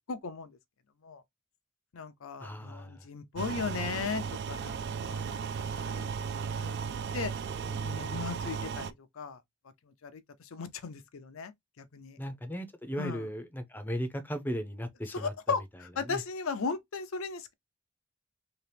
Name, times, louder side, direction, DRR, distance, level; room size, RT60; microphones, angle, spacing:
voice 1, 0.1-0.6 1.0-1.2 1.9-5.5 5.8-6.1 6.6-7.3 7.6-9.4 9.8-12.2 13.0-13.3 15.1-17.5, left 5 dB, 70° left, 0.5 m, -37 dB
voice 2, 2.4-3.1 12.2-15.3 16.1-16.2, equal, 10° left, 0.6 m, -36 dB
sound 1, 3.4-8.9, right 6 dB, 55° right, 0.3 m, -35 dB
2.9 x 2.9 x 3.3 m
head